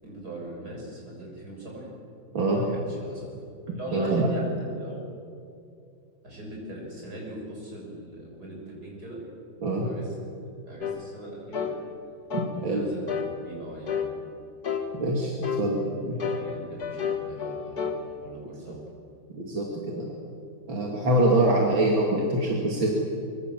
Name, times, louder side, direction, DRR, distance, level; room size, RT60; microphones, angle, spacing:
voice 1, 0.0-1.9 2.5-3.3 3.8-5.0 6.2-9.2 9.6-10.1 10.7-11.7 12.5-13.2 13.4-14.1 16.3-18.8, right 1 dB, 50° right, -2 dB, 7.6 m, -40 dB
voice 2, 3.7-4.3 9.6-9.8 12.6-12.8 15.0-15.3 15.6-16.2 19.3-20.1 20.7-22.9, right 1 dB, 80° right, -2 dB, 3.3 m, -24 dB
sound 1, 10.8-11.0 11.5-11.8 12.3-12.5 13.1-13.3 13.9-14.1 14.6-14.9 15.4-15.7 16.2-18.0, left 7 dB, 55° left, 2.1 m, -30 dB
24.0 x 24.0 x 7.6 m, 2.5 s
omnidirectional pair, 2.1 m